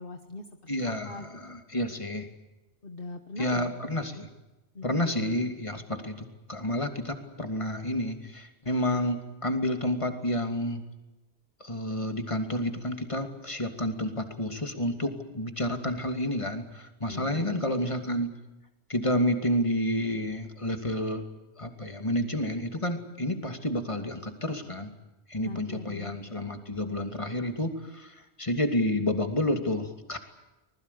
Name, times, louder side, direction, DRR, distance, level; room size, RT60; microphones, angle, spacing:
voice 1, 0.0-1.3 2.8-3.8 4.7-5.1 17.1-17.6 25.4-26.3, left 3 dB, 50° left, 7 dB, 1.5 m, -41 dB
voice 2, 0.7-2.3 3.4-4.3 4.8-10.8 11.6-18.3 18.9-21.2 21.6-24.9 25.3-30.2, left 1 dB, 25° left, 6 dB, 2.7 m, -30 dB
25.0 x 20.5 x 8.4 m, 1.0 s
omnidirectional pair, 1.2 m